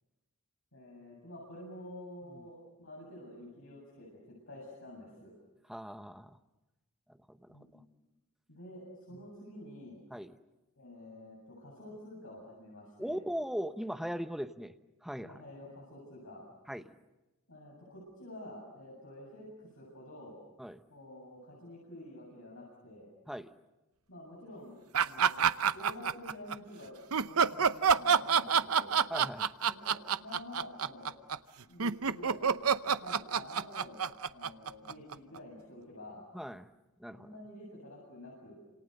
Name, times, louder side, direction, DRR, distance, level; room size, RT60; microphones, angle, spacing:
voice 1, 0.7-5.3 7.5-7.7 8.5-10.0 10.8-13.2 15.2-16.4 17.5-20.4 20.9-23.1 24.1-24.7 25.0-25.5 25.7-29.0 29.6-31.1 31.6-34.0 34.3-36.2 37.1-38.6, left 1 dB, 70° left, -3 dB, 7.9 m, -49 dB
voice 2, 5.7-6.4 7.3-7.6 10.1-10.3 13.0-14.7 15.0-15.4 16.7-17.0 20.6-20.8 23.3-23.5 29.1-29.5 36.3-36.7 37.0-37.3, equal, ahead, 9 dB, 1.0 m, -39 dB
sound 1, 24.9-26.6 27.1-35.4, right 6 dB, 75° right, 0.8 m, -28 dB
29.0 x 27.5 x 6.6 m, 1.1 s
head